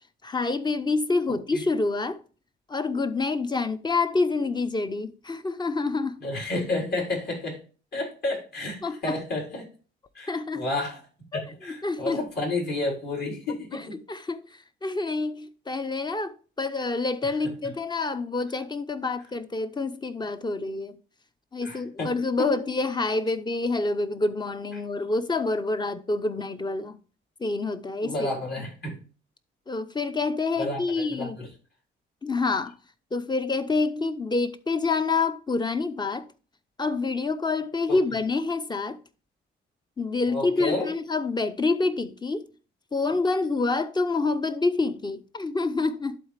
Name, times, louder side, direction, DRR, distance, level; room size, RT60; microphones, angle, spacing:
voice 1, 0.2-2.2 2.7-6.2 8.8-9.2 10.3-10.6 11.3-12.2 13.7-21.0 21.5-27.0 27.4-28.3 29.7-31.4 32.2-32.7 33.1-36.3 36.8-39.0 40.0-42.4 42.9-46.2, left 3 dB, 20° left, 0.7 m, -27 dB
voice 2, 1.3-1.6 6.2-7.6 7.9-9.7 10.1-11.0 11.3-14.0 21.6-22.5 28.0-29.0 30.6-31.5 37.9-38.0 40.3-40.9, left 2 dB, 55° left, 4.2 m, -31 dB
11.5 x 4.0 x 3.3 m
cardioid pair, 90°, 20 cm